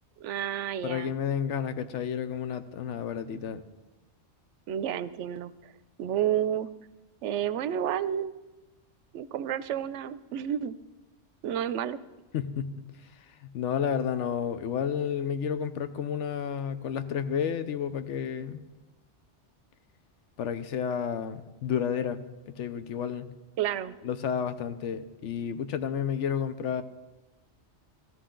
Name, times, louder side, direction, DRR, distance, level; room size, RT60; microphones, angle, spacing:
voice 1, 0.2-1.1 4.7-5.5 6.0-6.7 7.2-8.3 9.1-10.8 11.4-12.0 23.6-24.0, right 10 dB, 85° right, 15 dB, 0.9 m, -30 dB
voice 2, 0.8-3.6 12.3-12.9 13.4-18.6 20.4-23.3 24.0-26.8, left 8 dB, 90° left, 11 dB, 1.1 m, -31 dB
14.0 x 13.0 x 3.8 m, 1.1 s
omnidirectional pair, 1.2 m